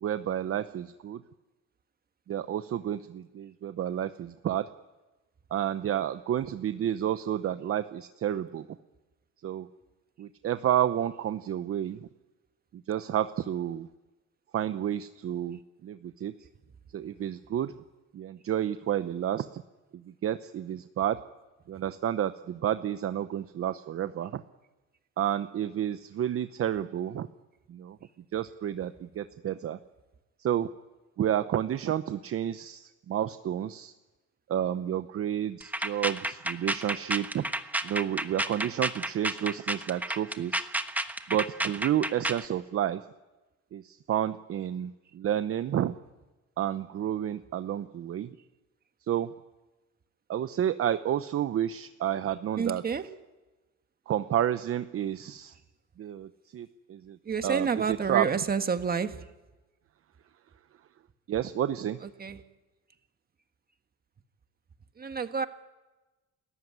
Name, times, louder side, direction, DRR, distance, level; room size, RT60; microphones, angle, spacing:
voice 1, 0.0-1.2 2.3-4.7 5.5-8.7 9.4-9.7 10.2-12.1 12.7-13.9 14.5-16.3 16.9-17.8 18.1-19.6 19.9-21.2 21.7-24.4 25.2-27.3 27.7-28.0 28.3-29.8 30.4-30.7 31.2-33.9 34.5-37.4 37.8-40.7 41.3-43.0 43.7-45.9 46.6-48.4 49.1-49.3 50.3-52.8 54.1-55.5 56.0-57.2 57.4-58.3 61.3-62.0, right 10 dB, 45° right, 12 dB, 0.8 m, -30 dB
sound 1, 35.6-42.5, right 1 dB, 5° right, 1.3 m, -31 dB
voice 2, 52.6-53.1 57.2-59.2 62.2-62.4 65.0-65.5, right 6 dB, 30° right, 9 dB, 1.5 m, -29 dB
29.5 x 14.5 x 9.7 m, 1.1 s
cardioid pair, 120°, 31 cm